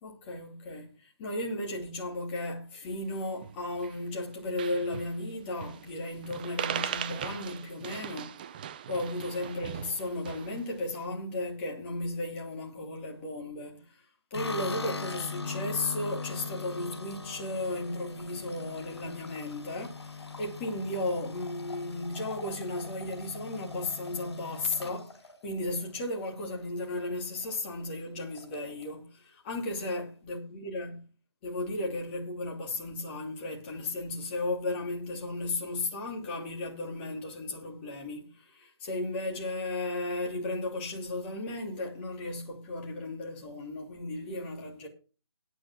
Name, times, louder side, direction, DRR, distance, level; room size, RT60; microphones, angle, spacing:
voice 1, 0.0-8.3 8.9-14.0 14.3-25.2 25.4-31.0 31.4-44.9, left 2 dB, 25° left, 2.9 m, -35 dB
sound 1, 3.4-4.0 4.3-4.4 4.6-5.1 5.6-6.0 6.2-10.6, right 9 dB, 20° right, 0.5 m, -39 dB
sound 2, 14.3-26.6 26.9-27.5 27.8-27.9 28.2-28.9, left 4 dB, 65° left, 5.4 m, -41 dB
9.3 x 9.0 x 6.1 m
figure-of-eight pair, 155°, 15 cm